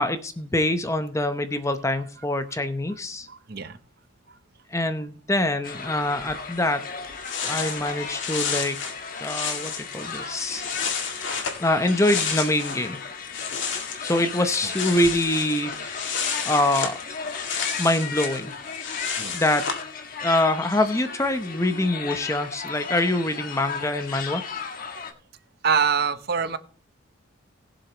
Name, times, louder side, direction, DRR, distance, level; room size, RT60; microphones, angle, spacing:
voice 1, 0.0-3.3 4.7-6.9 7.4-8.8 9.2-10.6 11.6-13.0 14.0-17.0 17.8-18.5 19.3-19.7 20.2-24.4, left 1 dB, 15° left, 0.7 m, -25 dB
voice 2, 3.3-3.8 4.3-4.4 9.3-9.4 9.7-10.1 19.2-19.4 25.6-26.6, right 6 dB, 50° right, 0.7 m, -26 dB
sound 1, 5.6-25.1, left 5 dB, 45° left, 1.2 m, -36 dB
sound 2, 7.0-12.9 13.2-19.8, left 6 dB, 60° left, 2.2 m, -31 dB
19.5 x 7.0 x 2.9 m
head